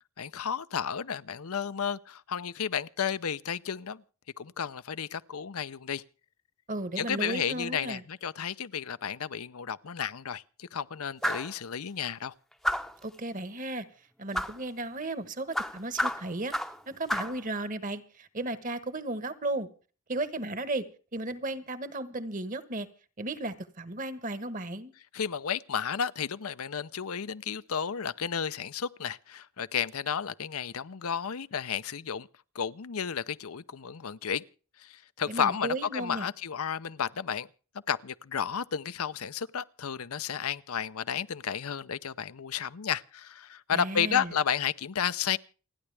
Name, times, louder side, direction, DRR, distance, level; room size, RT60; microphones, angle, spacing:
voice 1, 0.2-4.0 4.4-6.0 7.0-12.3 25.1-32.3 32.5-34.4 34.8-37.5 37.9-45.4, left 7 dB, 80° left, 0.7 m, -32 dB
voice 2, 6.7-8.0 13.0-13.9 14.2-16.5 16.9-19.7 20.1-20.8 21.1-22.9 23.2-24.9 35.2-36.3 43.7-44.3, right 2 dB, 35° right, 1.3 m, -34 dB
sound 1, 11.2-11.5 12.6-13.0 14.3-14.6 15.5-16.8 17.1-17.4, equal, ahead, 0.7 m, -30 dB
29.0 x 10.0 x 3.4 m
head